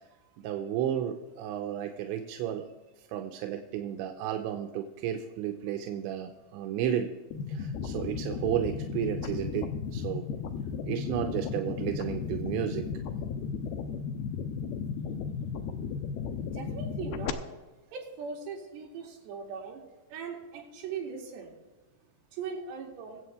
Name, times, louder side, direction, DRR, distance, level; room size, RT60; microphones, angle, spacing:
voice 1, 0.4-2.7 3.1-7.1 7.5-10.2 10.9-12.9, right 10 dB, 85° right, 3 dB, 3.0 m, -32 dB
sound 1, 7.3-17.3, left 6 dB, 85° left, 2.3 m, -35 dB
voice 2, 16.5-17.5 17.9-19.8 20.1-21.5 22.3-23.2, right 6 dB, 70° right, -2 dB, 4.4 m, -39 dB
23.0 x 7.9 x 3.3 m, 1.2 s
omnidirectional pair, 5.3 m